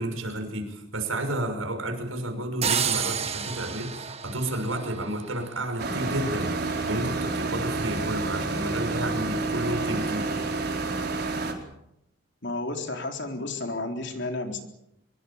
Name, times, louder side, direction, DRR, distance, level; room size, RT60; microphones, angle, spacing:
voice 1, 0.0-10.3, right 1 dB, 80° right, 5 dB, 6.5 m, -31 dB
sound 1, 2.6-5.5, right 7 dB, 30° right, 1.5 m, -30 dB
sound 2, 5.8-11.5, right 3 dB, 50° right, 4.6 m, -29 dB
voice 2, 12.4-14.6, left 2 dB, 55° left, 4 dB, 3.9 m, -32 dB
25.0 x 22.5 x 7.3 m, 0.81 s
head